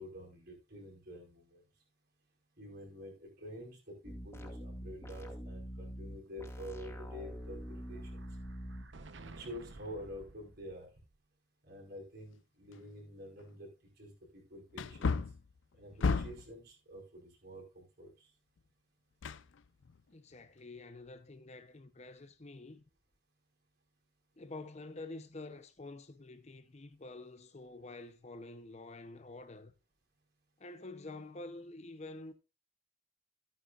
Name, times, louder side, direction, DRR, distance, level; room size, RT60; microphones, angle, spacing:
voice 1, 0.0-1.6 2.6-8.2 9.2-10.9 11.6-13.7 14.0-15.2 15.8-18.3, equal, 55° right, 4.9 m, -48 dB
sound 1, 4.0-8.8, equal, 15° left, 2.5 m, -44 dB
Explosion, 6.5-11.1, right 2 dB, 75° right, 0.9 m, -54 dB
Wood, 12.7-12.8 13.4-13.5 14.7-16.6 19.2-20.0 20.4-20.5, left 4 dB, 85° left, 0.5 m, -34 dB
voice 2, 20.1-22.8 24.4-29.7 30.6-32.3, left 2 dB, 35° left, 0.8 m, -48 dB
14.0 x 9.4 x 2.5 m
head